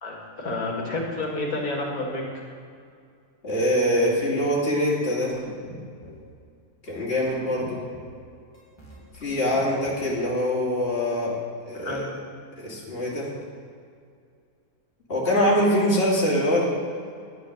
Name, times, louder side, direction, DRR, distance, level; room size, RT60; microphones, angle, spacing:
voice 1, 0.0-2.2 11.7-12.2, left 2 dB, 65° left, -1 dB, 2.6 m, -30 dB
voice 2, 3.4-5.3 6.9-7.8 9.2-11.3 11.7-12.0 12.6-13.3 15.1-16.6, equal, 40° left, -6 dB, 2.8 m, -23 dB
sound 1, 5.3-6.3 6.9-7.0 7.2-8.2 8.5-10.2, left 1 dB, 15° left, 2.3 m, -44 dB
9.7 x 9.5 x 6.5 m, 2.3 s
omnidirectional pair, 1.6 m